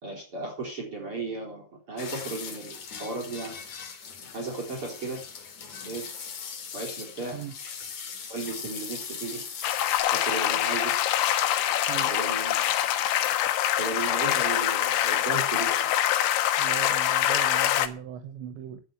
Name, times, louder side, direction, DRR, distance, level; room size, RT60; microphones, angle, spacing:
voice 1, 0.0-3.6 4.3-5.2 5.8-6.1 6.7-7.4 8.3-9.4 10.1-10.9 12.0-12.7 13.8-16.0 16.6-16.7, right 3 dB, 30° right, -2 dB, 4.3 m, -35 dB
sound 1, 2.0-10.0, left 6 dB, 45° left, 2.9 m, -40 dB
sound 2, 9.6-17.9, left 12 dB, 80° left, 3.4 m, -25 dB
voice 2, 16.6-18.8, right 10 dB, 80° right, 9 dB, 3.3 m, -38 dB
11.5 x 8.4 x 9.2 m, 0.38 s
omnidirectional pair, 5.3 m